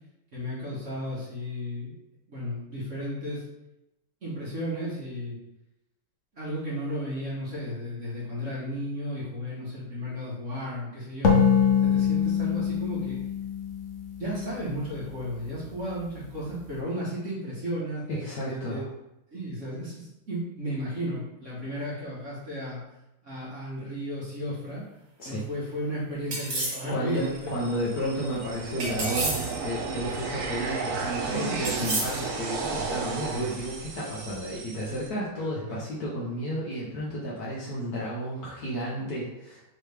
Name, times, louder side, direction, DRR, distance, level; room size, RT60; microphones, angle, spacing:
voice 1, 0.3-1.9 2.3-3.4 4.2-5.4 6.3-11.4 11.8-13.2 14.2-18.0 18.5-18.8 19.3-22.8 23.2-24.8 25.2-27.8 31.3-31.8 35.3-35.8, equal, 40° right, -7 dB, 1.3 m, -34 dB
sound 1, 11.2-14.7, left 7 dB, 75° left, 0.6 m, -24 dB
voice 2, 18.1-18.9 25.2-25.4 26.9-39.6, equal, 60° left, -5 dB, 1.1 m, -32 dB
sound 2, 26.3-26.9 28.8-29.6 31.6-32.3, right 2 dB, 60° right, 2.0 m, -30 dB
sound 3, 27.1-35.1, right 4 dB, 75° right, 0.8 m, -34 dB
4.6 x 3.2 x 3.3 m, 0.89 s
omnidirectional pair, 2.3 m